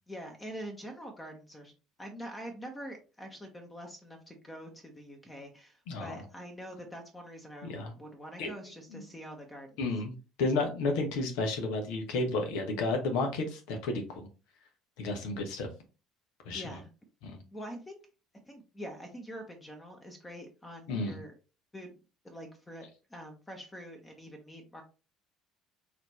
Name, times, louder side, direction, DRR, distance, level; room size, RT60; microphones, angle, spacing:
voice 1, 0.1-1.7 2.0-9.8 16.5-16.9 17.5-18.0 18.5-21.3 21.7-21.9 22.2-24.8, equal, 20° left, 4 dB, 1.1 m, -45 dB
voice 2, 5.9-6.2 7.6-7.9 8.4-8.5 8.9-9.0 9.8-14.3 15.0-15.7 16.4-16.8 17.2-17.4 20.9-21.2, left 3 dB, 65° left, 4 dB, 1.0 m, -32 dB
4.2 x 2.8 x 3.0 m, 0.33 s
figure-of-eight pair, 60°, 0 cm